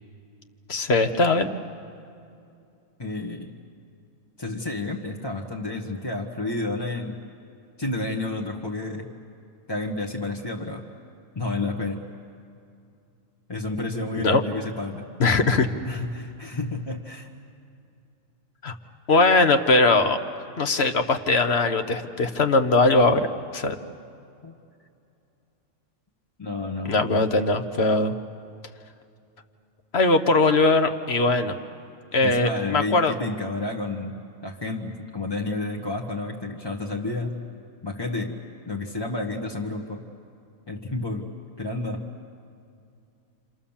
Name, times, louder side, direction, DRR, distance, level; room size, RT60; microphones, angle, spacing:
voice 1, 0.7-1.5 14.2-14.4 15.2-15.7 18.6-18.7 19.1-20.2 20.6-23.3 23.5-23.8 26.9-28.1 29.9-31.6 32.1-33.1, left 3 dB, 50° left, 7 dB, 1.3 m, -20 dB
voice 2, 3.0-3.6 4.4-7.2 7.8-9.1 9.7-10.9 11.3-12.0 13.5-15.1 15.8-17.3 24.4-24.6 26.4-27.1 32.2-37.3 37.8-38.4 38.6-40.0 40.7-41.3 41.6-42.0, left 2 dB, 20° left, -1 dB, 1.3 m, -30 dB
29.0 x 26.5 x 7.3 m, 2.6 s
omnidirectional pair, 1.4 m